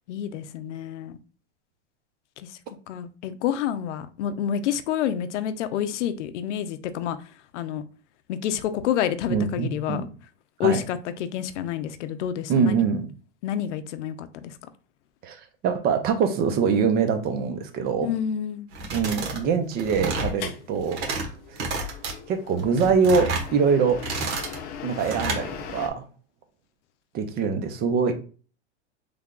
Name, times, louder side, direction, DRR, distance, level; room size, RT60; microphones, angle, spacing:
voice 1, 0.1-1.2 2.4-2.6 2.9-7.2 7.5-7.8 8.3-10.0 10.6-12.8 13.4-14.5 18.0-18.7, left 9 dB, 85° left, 0.5 m, -28 dB
voice 2, 9.3-10.1 10.6-10.8 12.5-13.1 15.2-15.4 15.6-18.1 18.9-21.2 21.5-21.9 22.3-24.0 24.8-26.0 27.1-28.1, right 5 dB, 30° right, 0.5 m, -24 dB
sound 1, 18.7-19.4 19.7-20.4 20.8-21.3 21.6-22.1 22.6-23.5 23.9-24.6 25.0-25.4, right 3 dB, 70° right, 1.2 m, -30 dB
sound 2, 20.4-25.9, left 7 dB, 25° left, 0.4 m, -40 dB
3.3 x 2.2 x 3.7 m
supercardioid pair, 135°, 35 cm